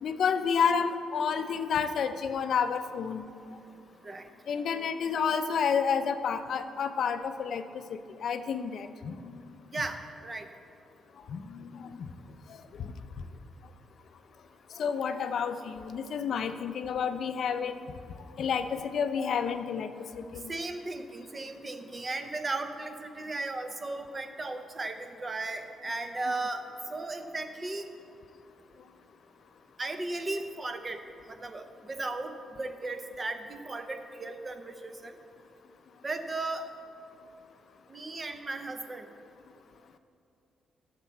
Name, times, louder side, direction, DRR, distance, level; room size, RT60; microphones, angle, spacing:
voice 1, 0.0-3.2 4.5-7.6 8.2-9.4 11.3-12.0 12.8-12.9 14.8-17.8 18.4-19.9 20.3-20.5, left 6 dB, 50° left, 9 dB, 0.5 m, -30 dB
voice 2, 9.7-10.5 20.5-26.6 26.9-27.9 29.8-31.0 31.3-35.2 36.0-36.7 37.9-39.1, right 2 dB, 20° right, 8 dB, 0.6 m, -36 dB
14.0 x 6.8 x 4.5 m, 2.5 s
cardioid pair, 170°, 0 cm